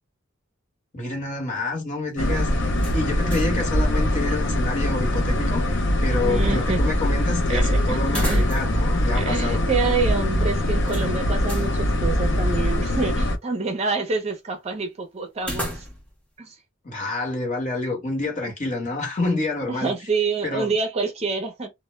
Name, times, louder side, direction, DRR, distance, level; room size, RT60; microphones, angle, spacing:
voice 1, 0.9-9.6 16.8-19.9 20.4-20.7, left 2 dB, 40° left, 1.1 m, -28 dB
sound 1, 2.2-13.4, left 1 dB, 60° left, 0.5 m, -22 dB
sound 2, 2.8-3.7 4.0-4.1 8.0-8.9 9.2-9.3 10.9-11.7 15.4-16.2, equal, 5° left, 0.7 m, -34 dB
voice 2, 6.2-6.8 7.5-8.4 9.1-15.9 16.4-16.6 19.7-21.7, right 4 dB, 30° right, 0.5 m, -27 dB
2.1 x 2.1 x 3.0 m
head